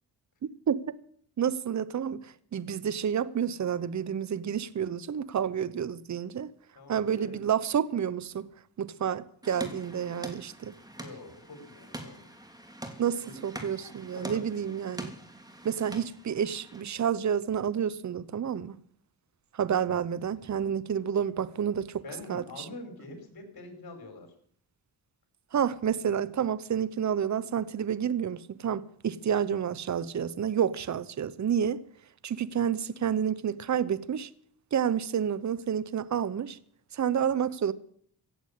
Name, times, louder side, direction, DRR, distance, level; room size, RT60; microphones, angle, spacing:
voice 1, 1.4-2.3 2.5-6.5 6.9-8.5 8.8-10.7 13.0-15.1 15.6-18.8 19.5-22.0 22.3-22.7 25.5-31.8 32.2-34.3 34.7-36.6 36.9-37.7, right 8 dB, 45° right, 0.9 m, -29 dB
voice 2, 6.8-7.5 10.6-12.3 12.7-12.8 13.2-13.4 14.2-14.4 22.0-24.3, left 2 dB, 60° left, 5.2 m, -45 dB
sound 1, 9.4-16.8, right 1 dB, 10° right, 3.0 m, -44 dB
16.0 x 8.1 x 8.3 m
cardioid pair, 65°, 42 cm